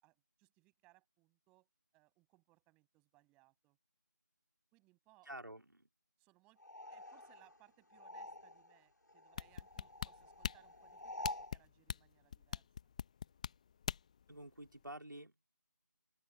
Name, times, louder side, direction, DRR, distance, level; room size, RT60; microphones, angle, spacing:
voice 1, 0.0-1.7 1.9-3.8 4.7-5.3 6.2-6.6 6.9-12.7, right 22 dB, 10° right, 7.0 m, -70 dB
voice 2, 5.2-5.9 14.3-15.5, right 1 dB, 85° right, 3.9 m, -50 dB
sound 1, 6.6-8.8 9.1-11.6, left 1 dB, 70° left, 5.0 m, -49 dB
sound 2, 9.4-14.2 14.7-14.8, left 7 dB, 20° left, 1.1 m, -42 dB
open air
figure-of-eight pair, 160°, 10 cm